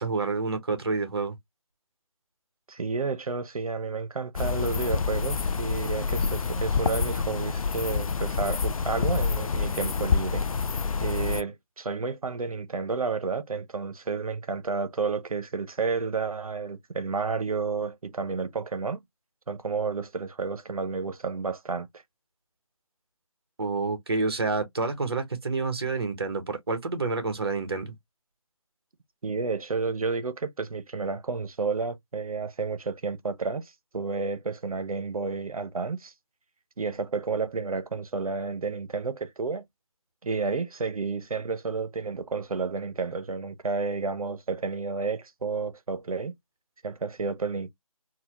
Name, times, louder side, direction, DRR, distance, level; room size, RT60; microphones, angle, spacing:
voice 1, 0.0-1.4 23.6-27.9, right 3 dB, 45° right, 1.1 m, -28 dB
voice 2, 2.7-10.4 11.0-19.0 19.5-21.9 29.2-36.1 36.8-39.6 40.2-46.3 46.8-47.7, right 4 dB, 75° right, 0.8 m, -31 dB
sound 1, 4.4-11.4, left 5 dB, 75° left, 0.4 m, -27 dB
4.0 x 2.2 x 2.9 m
figure-of-eight pair, 170°, 18 cm